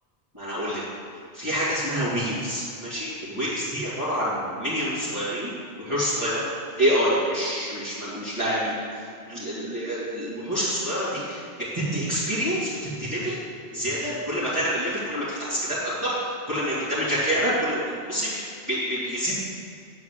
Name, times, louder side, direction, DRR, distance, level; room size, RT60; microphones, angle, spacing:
voice 1, 0.3-0.8 1.3-5.5 5.8-6.5 6.8-11.4 11.7-12.7 13.0-13.4 13.7-19.4, equal, 30° right, -14 dB, 2.8 m, -27 dB
9.3 x 4.8 x 7.7 m, 2.3 s
omnidirectional pair, 1.1 m